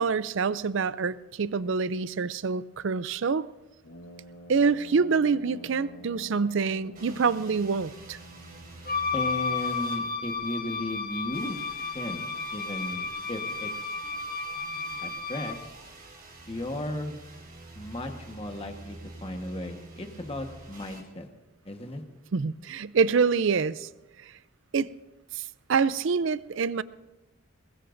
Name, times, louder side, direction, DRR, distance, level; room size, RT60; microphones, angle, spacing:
voice 1, 0.0-3.5 4.5-8.2 22.3-23.9 24.2-24.3 24.7-24.9 25.3-26.8, right 5 dB, 60° right, 0.4 m, -26 dB
Brass instrument, 3.8-9.7, equal, 85° left, 1.0 m, -49 dB
sound 1, 6.9-10.7 11.3-21.0, right 2 dB, 45° right, 4.7 m, -48 dB
Wind instrument woodwind instrument, 8.8-15.6, left 4 dB, 45° left, 1.0 m, -32 dB
voice 2, 9.1-11.6 11.9-12.3 12.5-13.7 15.0-15.7 16.5-17.2 17.7-21.3 21.6-22.0, left 1 dB, 25° left, 1.3 m, -35 dB
23.0 x 20.0 x 2.6 m
head